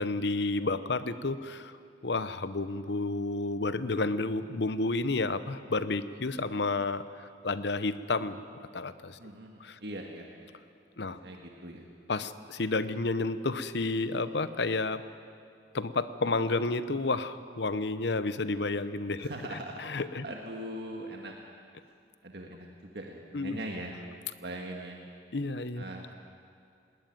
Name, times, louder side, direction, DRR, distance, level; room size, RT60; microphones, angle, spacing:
voice 1, 0.0-1.8 2.0-8.4 8.7-9.2 9.6-9.8 11.0-11.2 12.1-15.0 15.7-20.2 23.3-23.6 25.3-25.8, left 3 dB, 65° left, 13 dB, 0.8 m, -31 dB
voice 2, 9.2-10.5 11.0-11.9 19.2-19.8 20.2-21.3 22.2-22.7 22.9-23.9 24.4-25.0 25.8-26.1, right 1 dB, 60° right, 1 dB, 1.8 m, -41 dB
19.5 x 18.5 x 9.3 m, 2.3 s
head